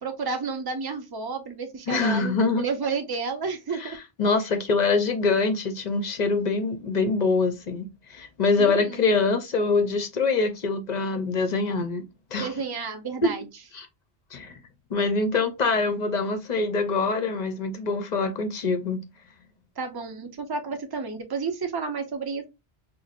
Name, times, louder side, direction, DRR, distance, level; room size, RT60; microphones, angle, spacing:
voice 1, 0.0-4.0 4.4-4.5 8.6-9.0 12.4-13.4 19.8-22.4, right 4 dB, 30° right, 0.5 m, -31 dB
voice 2, 1.9-2.6 3.8-12.0 12.3-12.5 13.2-13.3 13.7-13.9 14.3-14.6 14.9-19.0, left 3 dB, 50° left, 0.6 m, -24 dB
5.7 x 2.0 x 2.4 m
omnidirectional pair, 1.1 m